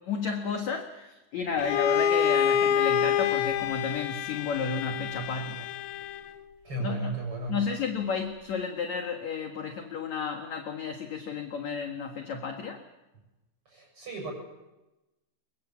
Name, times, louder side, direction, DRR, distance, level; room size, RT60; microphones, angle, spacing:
voice 1, 0.0-5.7 6.8-7.2 7.5-12.8, left 5 dB, 60° left, 4 dB, 2.0 m, -32 dB
Bowed string instrument, 1.6-6.4, left 9 dB, 90° left, 3.4 m, -27 dB
voice 2, 6.6-7.6 13.7-14.3, right 3 dB, 30° right, 2 dB, 8.0 m, -34 dB
24.0 x 23.0 x 7.4 m, 1.0 s
omnidirectional pair, 5.3 m